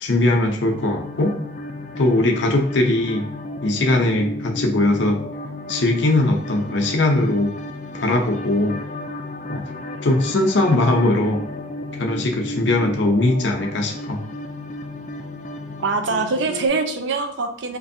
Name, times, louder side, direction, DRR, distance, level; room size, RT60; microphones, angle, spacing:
voice 1, 0.0-1.4 2.0-3.3 3.6-5.2 5.7-7.5 7.9-8.8 9.5-9.6 10.0-11.4 12.0-14.2, left 2 dB, 85° left, 2 dB, 0.7 m, -20 dB
sound 1, 0.6-16.7, left 2 dB, 45° left, 0.4 m, -33 dB
voice 2, 15.8-17.8, right 3 dB, 80° right, 6 dB, 0.5 m, -23 dB
4.5 x 2.5 x 2.7 m, 0.73 s
head